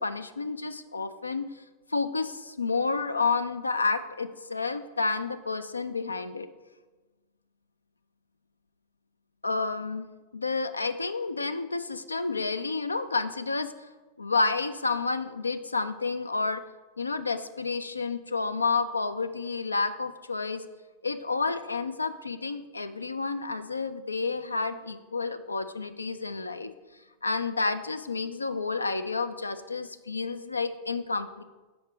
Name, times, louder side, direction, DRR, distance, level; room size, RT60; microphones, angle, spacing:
voice 1, 0.0-1.5 1.9-6.5 9.4-10.1 10.3-13.7 14.2-16.6 17.0-20.6 21.0-26.7 27.2-31.4, left 4 dB, 80° left, 11 dB, 0.3 m, -30 dB
6.0 x 4.7 x 5.0 m, 1.2 s
figure-of-eight pair, 90°, 0 cm